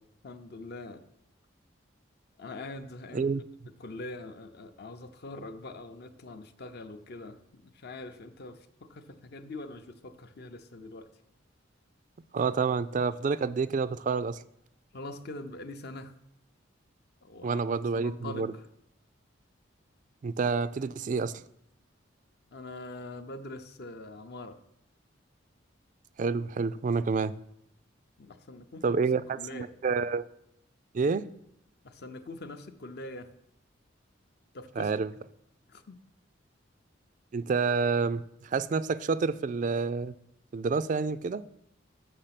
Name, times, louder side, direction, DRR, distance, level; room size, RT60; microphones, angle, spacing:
voice 1, 0.2-1.0 2.4-3.3 3.8-11.1 14.9-16.1 17.2-17.6 17.9-18.6 22.5-24.6 28.2-29.0 29.3-29.7 31.8-33.3 34.5-34.9 35.7-36.0, left 2 dB, 55° left, 0.6 m, -43 dB
voice 2, 12.3-14.4 17.4-18.5 20.2-21.4 26.2-27.3 28.8-30.3 30.9-31.3 34.8-35.1 37.3-40.1 40.5-41.5, right 4 dB, 40° right, 0.3 m, -28 dB
6.8 x 6.6 x 5.8 m
head